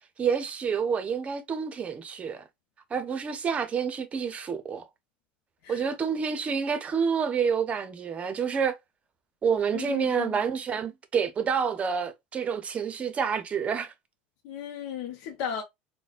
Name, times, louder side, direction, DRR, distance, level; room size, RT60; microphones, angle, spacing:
voice 1, 0.2-2.4 2.9-4.9 5.7-8.7 9.4-13.9, right 6 dB, 30° right, 0.7 m, -28 dB
voice 2, 9.7-10.4 14.4-15.6, left 8 dB, 65° left, 0.7 m, -35 dB
4.0 x 2.2 x 2.4 m
supercardioid pair, 105°, 4 cm